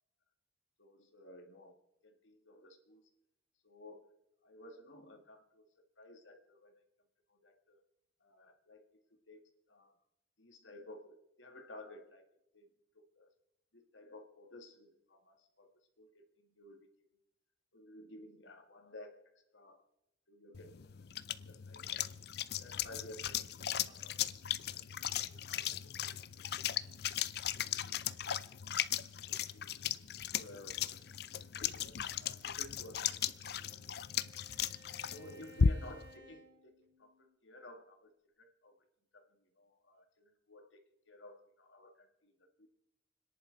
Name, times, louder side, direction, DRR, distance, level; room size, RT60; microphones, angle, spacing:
voice 1, 0.8-1.8 2.0-3.1 3.6-4.1 4.4-5.7 6.0-6.8 7.3-7.8 8.2-10.0 10.4-12.3 12.5-12.7 12.9-13.3 13.7-17.1 17.7-19.9 20.3-21.1 21.4-22.1 22.5-23.6 23.8-24.2 24.6-25.0 25.3-26.4 26.8-27.0 27.5-28.8 29.3-29.8 30.3-30.9 31.5-33.7 35.1-38.1 38.4-38.9 39.1-42.7, left 1 dB, 85° left, 5 dB, 2.0 m, -55 dB
sound 1, 20.5-36.1, left 8 dB, 55° left, 0.5 m, -37 dB
Bowed string instrument, 33.1-37.4, equal, 85° right, 5.7 m, -61 dB
30.0 x 10.5 x 4.0 m, 0.87 s
head